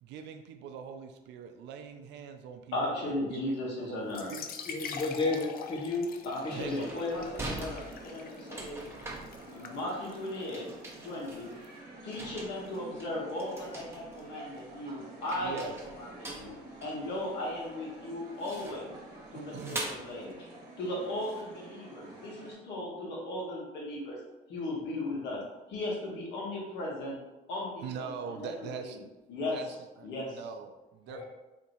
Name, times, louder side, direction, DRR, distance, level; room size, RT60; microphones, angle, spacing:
voice 1, 0.0-3.0 3.3-4.6 6.5-6.9 15.4-15.8 19.3-20.2 27.8-29.0 29.5-31.2, right 6 dB, 65° right, 7 dB, 0.4 m, -43 dB
voice 2, 2.7-4.3 6.2-8.8 9.5-10.7 11.0-11.5 12.0-16.5 16.8-18.9 19.3-20.5 20.8-24.2 24.5-25.4 25.7-27.2 27.5-29.0 29.3-29.6 30.0-30.4, left 1 dB, 70° left, -4 dB, 1.2 m, -37 dB
sound 1, 4.1-11.7, left 6 dB, 50° left, 0.4 m, -45 dB
voice 3, 4.6-6.1 6.4-6.6 7.0-7.3 7.7-7.8 31.1-31.2, left 3 dB, 25° left, -1 dB, 0.9 m, -32 dB
sound 2, 6.0-6.1 6.3-10.0 10.3-11.8 12.1-14.2 14.6-15.0 15.3-17.6 18.4-19.0 19.6-20.1 21.2-21.5, right 2 dB, 15° right, 0.7 m, -43 dB
sound 3, 6.3-22.5, right 2 dB, 50° right, 1.0 m, -49 dB
2.8 x 2.8 x 2.6 m, 1.0 s
supercardioid pair, 65°, 19 cm